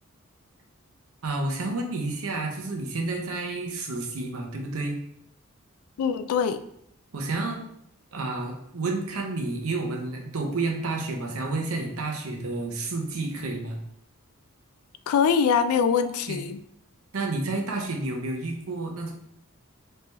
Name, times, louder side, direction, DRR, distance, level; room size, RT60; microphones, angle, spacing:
voice 1, 1.2-5.0 7.1-7.6 8.1-13.8 16.3-16.4 17.1-19.1, right 2 dB, 80° right, 2 dB, 0.7 m, -30 dB
voice 2, 6.0-6.6 15.1-16.6, left 6 dB, 85° left, 13 dB, 0.3 m, -23 dB
3.3 x 2.8 x 3.3 m, 0.74 s
head